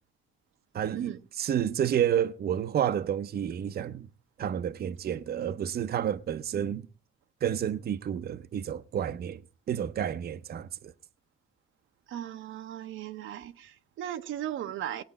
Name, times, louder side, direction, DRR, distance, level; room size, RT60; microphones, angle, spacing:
voice 1, 0.7-4.1 4.4-6.9 7.4-9.4 9.7-10.9, right 9 dB, 50° right, 0.7 m, -30 dB
voice 2, 12.1-15.0, right 11 dB, 80° right, 0.9 m, -37 dB
19.0 x 8.5 x 4.1 m
cardioid pair, 90°, 20 cm